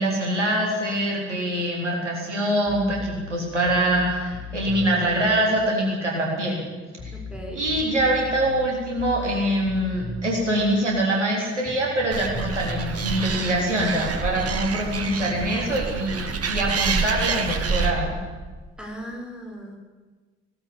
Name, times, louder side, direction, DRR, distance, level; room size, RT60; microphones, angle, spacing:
voice 1, 0.0-6.6 7.5-18.2, right 1 dB, 90° right, -2 dB, 4.0 m, -24 dB
sound 1, 2.7-5.2 7.0-10.6 11.7-13.3, left 2 dB, 45° left, 7.4 m, -36 dB
voice 2, 7.1-7.6 18.8-19.8, equal, 5° right, 1 dB, 6.0 m, -37 dB
Animal, 12.1-17.9, right 4 dB, 45° right, 2.6 m, -27 dB
19.5 x 17.5 x 8.7 m, 1.4 s
figure-of-eight pair, 40°, 35 cm